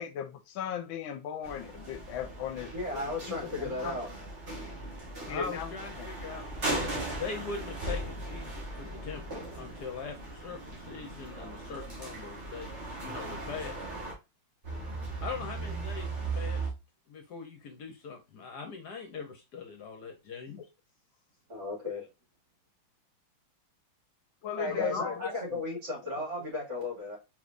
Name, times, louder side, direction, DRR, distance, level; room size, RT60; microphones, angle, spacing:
voice 1, 0.0-4.0 5.3-6.1 24.4-25.0 25.5-25.6, left 8 dB, 80° left, 1.3 m, -37 dB
sound 1, 1.4-14.1 14.6-16.7, right 2 dB, 35° right, 1.8 m, -38 dB
voice 2, 2.7-4.1 21.5-22.1 24.6-27.2, left 2 dB, 55° right, 3.3 m, -35 dB
voice 3, 5.3-6.5 7.1-13.8 15.2-16.6 17.1-20.6 24.7-25.3, left 5 dB, 60° left, 1.2 m, -41 dB
4.8 x 3.9 x 2.4 m
omnidirectional pair, 2.3 m